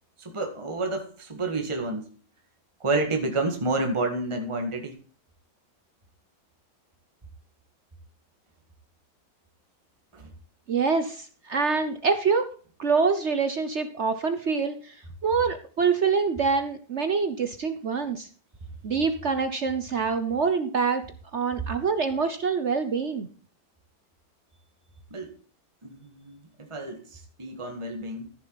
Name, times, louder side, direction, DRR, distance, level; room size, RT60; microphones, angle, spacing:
voice 1, 0.2-2.1 2.8-5.0 10.1-10.3 25.1-25.3 25.8-28.3, right 2 dB, 15° right, 1.7 m, -30 dB
voice 2, 10.7-12.5 12.8-15.0 15.2-18.3 18.8-21.0 21.3-23.3, right 5 dB, 55° right, 0.8 m, -25 dB
14.5 x 7.0 x 4.1 m
omnidirectional pair, 2.2 m